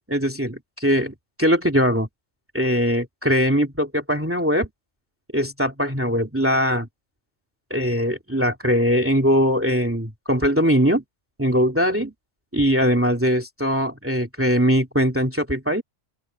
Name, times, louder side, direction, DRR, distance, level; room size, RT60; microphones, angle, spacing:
voice 1, 0.1-2.1 2.5-4.7 5.3-6.9 7.7-11.0 11.4-12.1 12.5-15.8, equal, 10° right, 2.6 m, -21 dB
open air
omnidirectional pair, 1.3 m